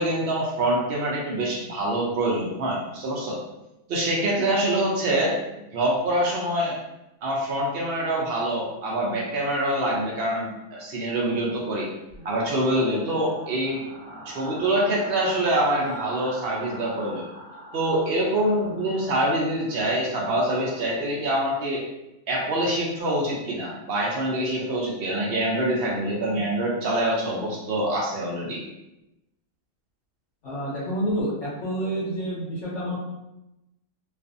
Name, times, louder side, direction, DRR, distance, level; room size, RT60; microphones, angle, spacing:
voice 1, 0.0-3.4 3.9-5.4 5.7-6.8 7.2-11.9 12.2-13.8 14.3-17.2 17.7-21.8 22.3-28.6, right 1 dB, 85° right, -3 dB, 0.5 m, -25 dB
sound 1, 12.1-21.0, right 1 dB, 45° right, 0.9 m, -42 dB
voice 2, 30.4-33.0, right 1 dB, 65° left, -7 dB, 0.9 m, -28 dB
2.4 x 2.4 x 2.5 m, 0.92 s
omnidirectional pair, 1.6 m